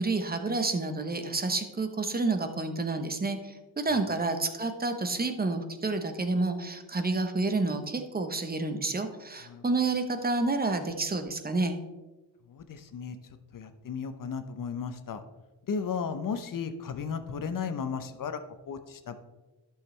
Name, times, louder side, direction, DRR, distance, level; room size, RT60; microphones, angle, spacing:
voice 1, 0.0-11.8, right 3 dB, 20° right, 7 dB, 1.0 m, -29 dB
voice 2, 12.5-13.2 13.5-15.2 15.7-18.4 18.7-19.1, left 6 dB, 50° left, 9 dB, 0.9 m, -35 dB
11.5 x 6.6 x 3.3 m, 1.1 s
cardioid pair, 100°, 43 cm